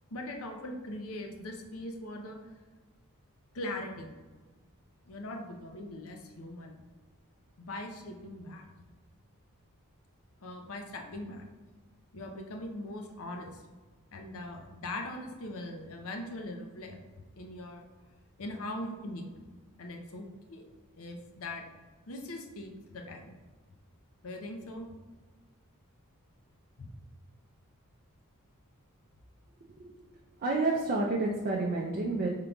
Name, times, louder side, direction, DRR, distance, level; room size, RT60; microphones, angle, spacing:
voice 1, 0.1-2.4 3.5-4.1 5.1-6.8 7.6-8.7 10.4-11.5 12.1-13.6 14.1-17.0 17.4-17.9 18.4-19.2 19.8-20.7 21.0-21.6 22.1-23.3 24.2-24.9 26.8-26.9, left 1 dB, 70° left, 3 dB, 0.7 m, -41 dB
voice 2, 30.4-32.3, right 2 dB, 40° right, -2 dB, 0.5 m, -29 dB
5.1 x 3.7 x 2.3 m, 1.3 s
head